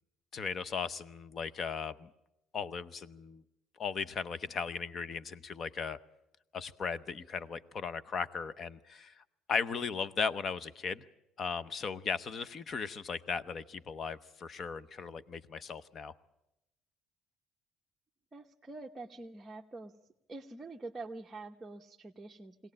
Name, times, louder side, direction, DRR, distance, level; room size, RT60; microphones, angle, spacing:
voice 1, 0.3-2.1 2.5-3.4 3.8-6.0 6.5-9.2 9.5-11.0 11.4-16.1, left 5 dB, 35° left, 16 dB, 0.8 m, -37 dB
voice 2, 18.3-19.9 20.3-22.7, right 3 dB, 15° right, 0 dB, 1.0 m, -46 dB
22.5 x 18.0 x 8.6 m, 0.89 s
cardioid pair, 130°, 0 cm